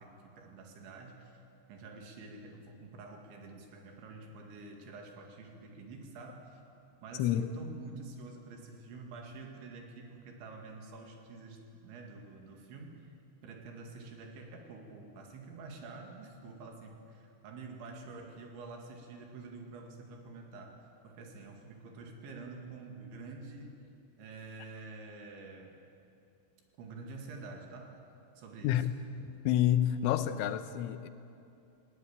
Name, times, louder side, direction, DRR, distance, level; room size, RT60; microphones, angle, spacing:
voice 1, 0.0-1.4 1.7-6.6 7.0-13.0 13.4-20.8 21.0-23.9 24.2-25.8 26.8-28.0 28.4-28.9, right 3 dB, 75° right, 2 dB, 4.4 m, -48 dB
voice 2, 29.2-31.1, left 11 dB, 90° left, 11 dB, 3.4 m, -29 dB
19.5 x 17.5 x 8.9 m, 2.7 s
omnidirectional pair, 5.5 m